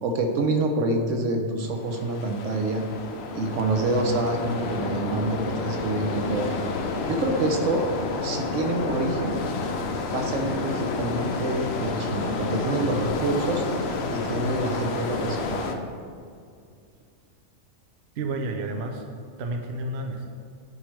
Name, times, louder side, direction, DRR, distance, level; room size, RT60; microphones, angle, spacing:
voice 1, 0.0-2.8 3.3-6.5 7.1-7.9 8.2-9.4 10.1-13.6 14.1-15.7, right 2 dB, 80° right, 3 dB, 1.1 m, -27 dB
sound 1, 1.8-15.7, left 3 dB, 60° left, 0.8 m, -30 dB
voice 2, 18.2-19.0 19.4-20.3, right 2 dB, 60° right, 4 dB, 0.8 m, -30 dB
9.2 x 4.8 x 3.3 m, 2.3 s
omnidirectional pair, 1.3 m